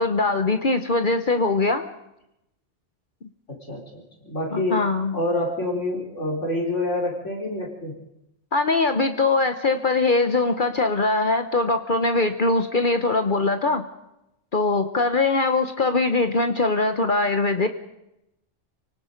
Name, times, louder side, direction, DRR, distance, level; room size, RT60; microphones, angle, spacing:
voice 1, 0.0-1.8 4.5-5.1 8.5-13.8 14.5-17.7, left 3 dB, 45° left, 8 dB, 1.1 m, -22 dB
voice 2, 3.5-4.8 5.1-7.9, left 1 dB, 80° left, 0 dB, 4.4 m, -27 dB
28.5 x 18.5 x 5.2 m, 0.87 s
omnidirectional pair, 1.2 m